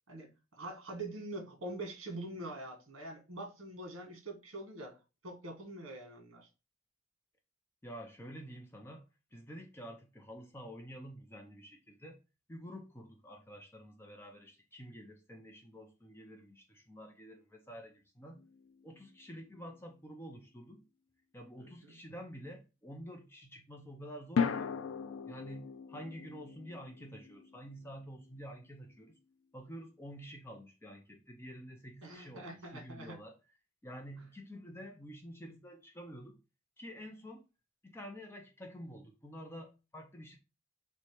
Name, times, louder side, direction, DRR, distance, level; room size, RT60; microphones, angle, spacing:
voice 1, 0.1-6.5 21.6-22.0 32.0-33.2, right 2 dB, 75° right, 1.5 m, -44 dB
voice 2, 7.8-9.1 9.3-12.2 12.5-18.4 18.8-20.8 21.3-24.7 25.3-29.2 29.5-33.4 33.8-36.4 36.8-37.4 37.8-40.4, equal, 10° left, 0.5 m, -49 dB
sound 1, 18.4-19.5 24.4-28.7, left 6 dB, 75° left, 0.4 m, -38 dB
3.3 x 3.1 x 4.4 m
head